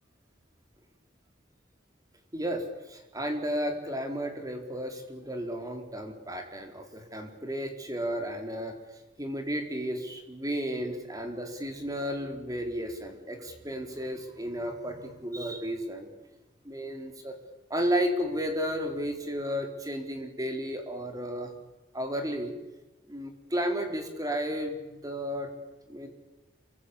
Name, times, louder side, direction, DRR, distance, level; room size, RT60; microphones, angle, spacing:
voice 1, 2.3-8.7 9.2-16.1 16.6-17.3 17.7-21.5 21.9-22.5 23.1-25.5 25.9-26.1, equal, 20° right, 4 dB, 4.1 m, -33 dB
27.5 x 24.5 x 8.6 m, 1.1 s
head